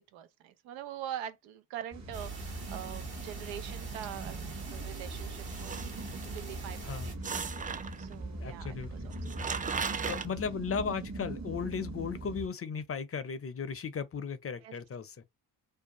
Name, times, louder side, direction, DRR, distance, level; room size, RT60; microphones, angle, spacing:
voice 1, 0.1-4.4 4.7-5.8 6.3-7.3 8.0-9.9 14.6-14.7, right 11 dB, 90° right, 0.5 m, -44 dB
sound 1, 1.9-12.5, right 2 dB, 35° right, 1.0 m, -41 dB
sound 2, 2.1-7.1, right 5 dB, 55° right, 1.3 m, -43 dB
sound 3, 5.5-6.4 7.2-8.1 8.8-8.9 9.1-10.3, right 5 dB, 20° right, 0.3 m, -36 dB
voice 2, 8.4-9.1 10.1-15.1, left 6 dB, 30° left, 0.5 m, -36 dB
2.6 x 2.2 x 2.9 m
hypercardioid pair, 45°, 45 cm